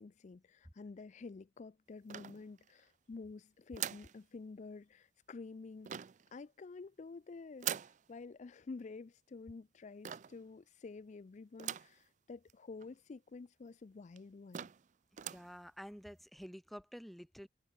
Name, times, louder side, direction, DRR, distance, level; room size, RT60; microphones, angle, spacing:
voice 1, 0.0-6.0 6.3-7.7 8.1-14.7, left 4 dB, 40° left, 0.4 m, -50 dB
sound 1, 2.1-2.8 3.7-4.2 5.8-6.3 7.6-8.0 10.0-10.4 11.6-12.0 12.5-12.6 12.8-12.9 13.7-13.8 14.2-14.3 14.5-14.9 15.1-15.5, right 10 dB, 40° right, 0.4 m, -42 dB
voice 2, 15.3-17.5, equal, ahead, 0.9 m, -50 dB
head